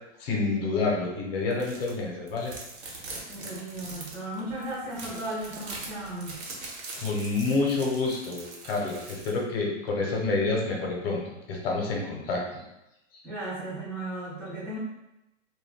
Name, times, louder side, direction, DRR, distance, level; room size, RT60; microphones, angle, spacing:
voice 1, 0.2-2.5 7.0-11.2 11.5-12.6, left 3 dB, 50° left, -1 dB, 0.9 m, -28 dB
sound 1, 1.5-1.9 2.3-9.4, right 3 dB, 60° right, 1.0 m, -42 dB
voice 2, 3.3-6.4 13.2-14.8, right 1 dB, 5° right, -10 dB, 0.4 m, -35 dB
2.3 x 2.1 x 3.5 m, 0.91 s
hypercardioid pair, 140°, 38 cm